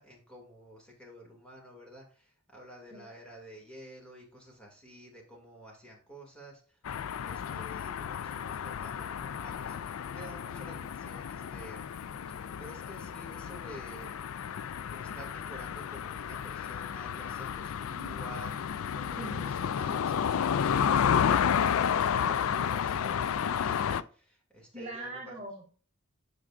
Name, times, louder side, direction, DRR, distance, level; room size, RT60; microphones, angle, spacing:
voice 1, 0.0-6.8 7.2-14.5 14.8-25.4, equal, 5° left, -1 dB, 2.3 m, -51 dB
sound 1, 6.8-24.0, left 8 dB, 75° left, 0.4 m, -31 dB
voice 2, 19.2-19.5 24.7-25.6, right 2 dB, 30° right, -2 dB, 1.4 m, -41 dB
9.8 x 5.2 x 2.5 m, 0.43 s
head